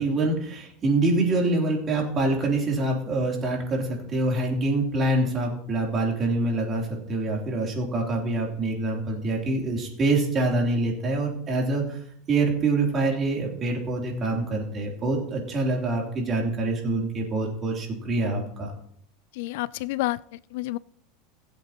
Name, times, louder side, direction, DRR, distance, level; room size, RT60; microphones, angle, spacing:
voice 1, 0.0-12.0 12.3-18.7, right 2 dB, 30° right, -1 dB, 3.2 m, -25 dB
voice 2, 19.3-20.8, left 18 dB, 70° left, 19 dB, 0.3 m, -30 dB
20.0 x 7.9 x 2.9 m, 0.63 s
supercardioid pair, 140°, 0 cm